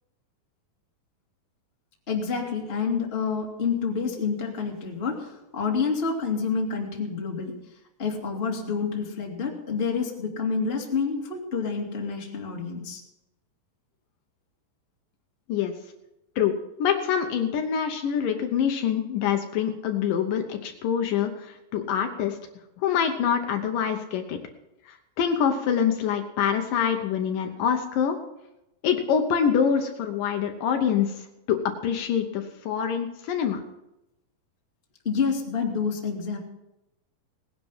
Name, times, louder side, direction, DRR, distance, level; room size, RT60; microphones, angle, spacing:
voice 1, 2.1-7.6 8.0-13.0 35.0-36.4, left 5 dB, 20° left, 0 dB, 1.9 m, -28 dB
voice 2, 16.4-22.4 22.8-24.4 24.9-28.2 28.8-33.6, left 8 dB, 75° left, 5 dB, 2.5 m, -25 dB
18.5 x 10.0 x 5.6 m, 0.92 s
omnidirectional pair, 4.2 m